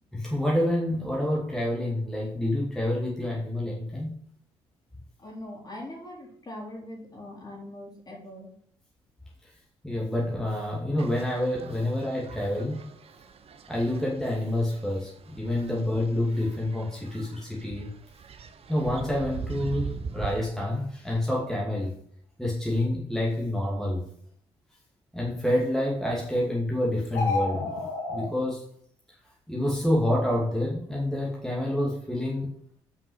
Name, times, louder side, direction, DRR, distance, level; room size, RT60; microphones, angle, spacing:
voice 1, 0.1-4.1 9.4-9.5 9.8-12.8 13.7-17.9 18.7-21.9 22.4-24.0 25.1-27.6 28.1-28.7 29.5-32.5, left 1 dB, 5° left, -4 dB, 2.4 m, -28 dB
voice 2, 5.2-8.5, left 1 dB, 30° left, -2 dB, 3.9 m, -41 dB
sound 1, 11.0-20.5, right 6 dB, 50° right, 0.9 m, -42 dB
sound 2, 27.1-28.3, left 3 dB, 85° left, 1.8 m, -29 dB
5.8 x 5.2 x 6.3 m, 0.62 s
hypercardioid pair, 55°, 13 cm